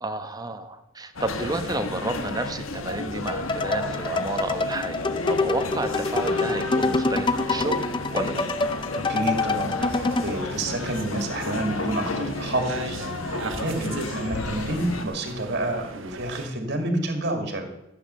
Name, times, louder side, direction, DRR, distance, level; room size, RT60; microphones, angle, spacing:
voice 1, 0.0-7.8 8.1-8.5, right 2 dB, 20° right, 8 dB, 1.1 m, -31 dB
sound 1, 1.2-15.1, left 2 dB, 85° left, 1.4 m, -32 dB
sound 2, 3.3-10.4, left 3 dB, 25° left, 0.6 m, -26 dB
voice 2, 8.9-13.2 13.5-17.7, right 1 dB, 55° right, 5 dB, 2.3 m, -29 dB
sound 3, 9.8-16.5, right 3 dB, 70° right, 1.5 m, -38 dB
14.5 x 8.4 x 6.9 m, 0.91 s
head